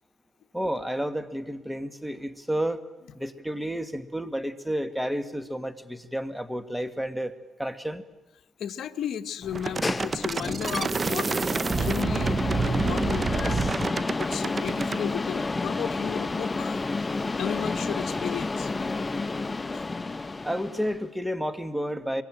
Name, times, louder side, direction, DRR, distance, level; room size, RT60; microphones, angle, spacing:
voice 1, 0.5-2.8 3.1-7.3 7.6-8.0 20.4-22.2, equal, 5° right, 10 dB, 1.9 m, -31 dB
voice 2, 8.6-11.5 11.8-13.6 14.2-18.7 19.7-19.9, left 9 dB, 70° left, 9 dB, 1.2 m, -34 dB
sound 1, 9.4-21.0, left 3 dB, 20° left, 0.8 m, -31 dB
sound 2, 9.5-15.0, right 4 dB, 35° right, 0.8 m, -28 dB
25.0 x 23.0 x 9.1 m, 1.1 s
cardioid pair, 90°, 0 cm